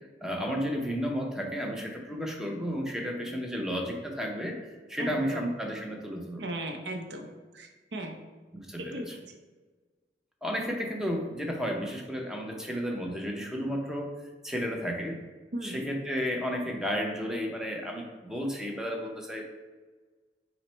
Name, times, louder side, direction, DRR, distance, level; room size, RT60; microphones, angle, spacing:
voice 1, 0.2-4.6 4.9-6.4 8.5-9.0 10.4-14.1 14.4-15.2 15.6-19.4, equal, 5° right, 0 dB, 0.6 m, -32 dB
voice 2, 5.0-5.5 6.4-8.2 8.8-9.2 15.5-15.8, right 1 dB, 70° right, 3 dB, 0.6 m, -37 dB
5.7 x 2.1 x 4.3 m, 1.3 s
head